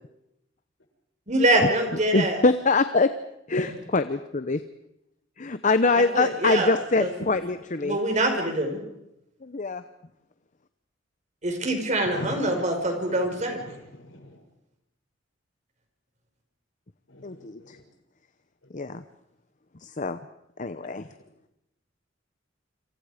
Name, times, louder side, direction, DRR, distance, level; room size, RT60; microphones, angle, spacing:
voice 1, 1.3-2.4 6.0-6.7 7.0-7.1 7.8-8.8 11.4-13.6, right 1 dB, 40° right, 4 dB, 5.3 m, -24 dB
voice 2, 1.9-3.1 3.5-4.6 5.4-8.0 9.4-9.8 17.2-17.8 18.7-19.0 19.8-20.2 20.6-21.0, left 3 dB, 40° left, 11 dB, 0.9 m, -24 dB
voice 3, 12.0-12.7 13.1-13.2 13.7-14.3 17.1-17.7, left 1 dB, 85° left, 2 dB, 7.2 m, -39 dB
28.0 x 26.5 x 5.1 m, 0.85 s
head